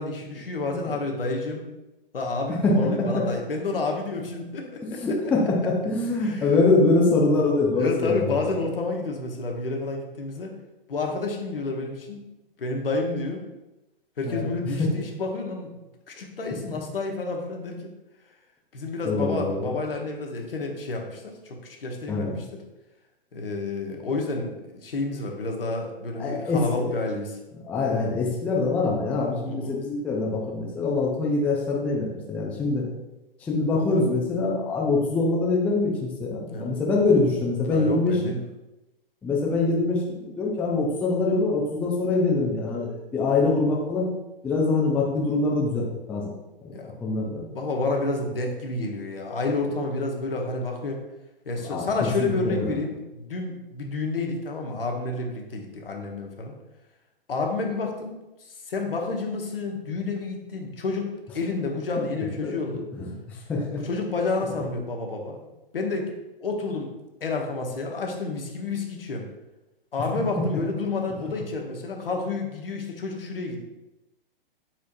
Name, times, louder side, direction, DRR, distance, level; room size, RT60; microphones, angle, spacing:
voice 1, 0.0-1.7 2.1-5.0 6.2-6.5 7.8-10.5 10.9-12.2 12.6-13.4 14.2-15.7 16.1-17.9 18.7-22.4 23.3-27.4 29.4-29.8 36.5-36.7 37.7-38.4 46.7-47.2 47.5-51.0 51.4-56.5 57.3-61.1 61.3-62.8 63.8-65.4 65.7-66.1 66.4-66.9 67.2-69.2 69.9-73.6, left 3 dB, 75° left, 1 dB, 1.1 m, -30 dB
voice 2, 0.6-0.9 2.6-3.3 4.8-8.6 14.3-14.5 16.5-16.8 19.0-19.7 22.1-22.4 26.2-26.8 27.7-32.9 33.4-38.2 39.2-44.1 44.4-46.3 47.0-47.5 51.7-51.9 52.2-52.8 61.9-63.8 71.2-71.3, left 3 dB, 5° left, -3 dB, 0.4 m, -24 dB
4.6 x 4.3 x 2.6 m, 0.98 s
figure-of-eight pair, 120°, 29 cm